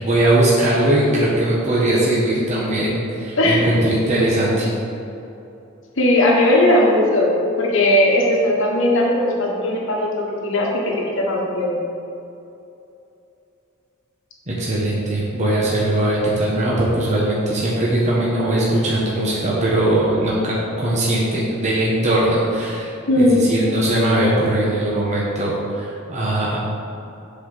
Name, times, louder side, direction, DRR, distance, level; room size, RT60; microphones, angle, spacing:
voice 1, 0.0-4.7 14.5-26.6, right 1 dB, 35° right, -6 dB, 1.3 m, -20 dB
voice 2, 3.4-3.7 6.0-7.3 7.6-11.7 23.1-23.4, left 1 dB, 65° left, -2 dB, 1.5 m, -17 dB
7.6 x 4.6 x 6.5 m, 2.8 s
head